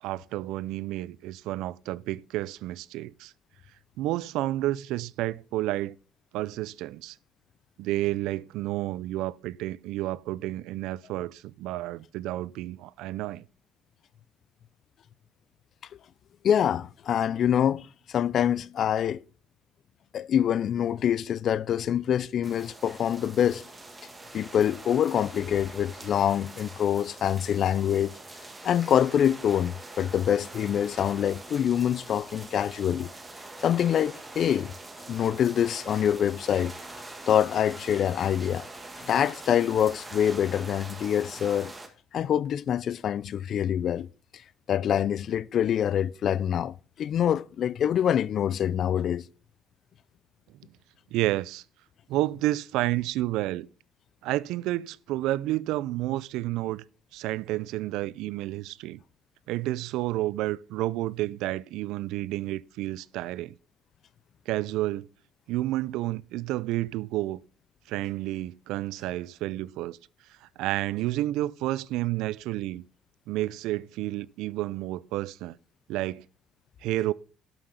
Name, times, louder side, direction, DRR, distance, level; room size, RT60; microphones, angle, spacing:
voice 1, 0.0-3.3 4.0-6.0 6.3-7.2 7.8-13.4 51.1-51.6 52.1-53.7 54.2-56.8 57.1-59.0 59.5-63.6 64.5-65.1 65.5-67.4 67.9-70.0 70.4-72.8 73.3-75.6 75.9-76.2 76.8-77.1, right 16 dB, 90° right, 0.4 m, -30 dB
voice 2, 16.4-19.2 20.1-23.7 24.3-28.1 28.6-33.1 33.6-34.7 35.1-36.7 37.3-38.7 39.0-41.7 42.1-44.1 44.7-49.2, left 9 dB, 50° left, 0.4 m, -25 dB
sound 1, 22.4-41.9, right 2 dB, 15° right, 1.5 m, -44 dB
11.5 x 6.0 x 5.6 m
cardioid pair, 145°, 0 cm